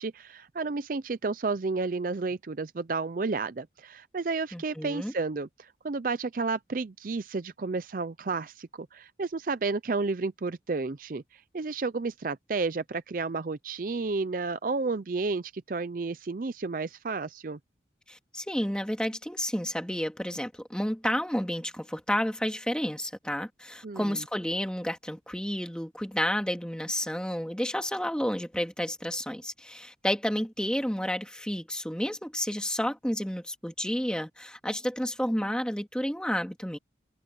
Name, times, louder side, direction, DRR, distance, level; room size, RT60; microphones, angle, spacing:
voice 1, 0.0-17.6 23.8-24.2, right 3 dB, 45° right, 0.5 m, -31 dB
voice 2, 4.5-5.1 18.1-36.8, equal, 5° left, 2.1 m, -31 dB
head